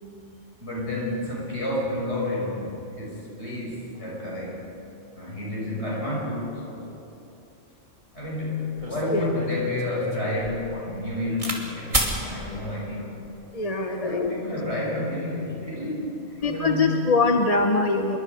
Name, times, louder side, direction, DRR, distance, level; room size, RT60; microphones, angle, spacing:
voice 1, 0.6-4.6 5.1-6.9 8.1-13.2 13.8-17.0, left 2 dB, 60° left, -4 dB, 7.4 m, -30 dB
sound 1, 8.8-11.6 11.9-12.2 13.0-13.4, right 1 dB, 25° right, 2.8 m, -30 dB
voice 2, 13.5-14.3 16.4-18.2, left 3 dB, 30° left, 4 dB, 1.1 m, -23 dB
27.0 x 23.0 x 5.2 m, 2.8 s
omnidirectional pair, 1.3 m